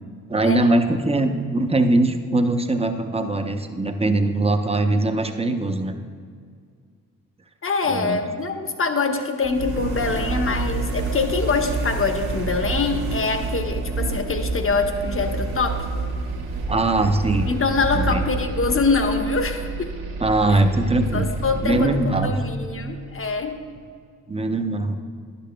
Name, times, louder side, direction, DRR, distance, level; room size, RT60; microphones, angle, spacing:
voice 1, 0.3-6.0 7.9-8.2 16.7-17.5 18.0-18.2 20.2-21.3 21.6-22.4 24.3-25.0, right 2 dB, 15° right, 6 dB, 0.7 m, -21 dB
voice 2, 7.6-15.9 17.5-19.9 20.5-20.6 21.1-23.6, left 4 dB, 35° left, 6 dB, 1.0 m, -24 dB
sound 1, 9.4-23.3, right 3 dB, 70° right, 1.4 m, -29 dB
11.5 x 6.9 x 2.2 m, 2.1 s
hypercardioid pair, 40°, 39 cm